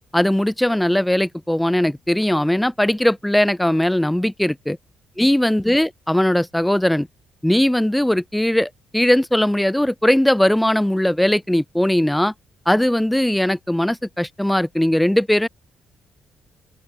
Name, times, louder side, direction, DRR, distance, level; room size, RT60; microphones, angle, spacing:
voice 1, 0.1-4.8 5.2-7.1 7.4-12.3 12.7-15.5, left 1 dB, 5° left, 3.7 m, -19 dB
open air
cardioid pair, 90°, 0 cm